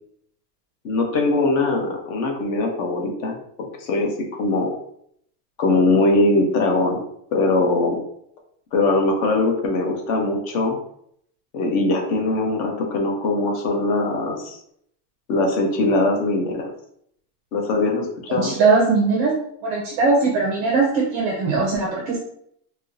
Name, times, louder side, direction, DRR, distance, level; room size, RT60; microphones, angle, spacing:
voice 1, 0.8-3.3 3.8-4.1 4.4-4.7 5.6-7.0 7.3-8.0 8.7-10.8 11.5-14.6 15.3-16.7 17.5-18.5, left 2 dB, 60° left, 1 dB, 1.0 m, -21 dB
voice 2, 18.3-19.3 19.6-22.2, right 4 dB, 30° right, -2 dB, 0.4 m, -20 dB
4.3 x 2.1 x 2.6 m, 0.69 s
supercardioid pair, 165°, 48 cm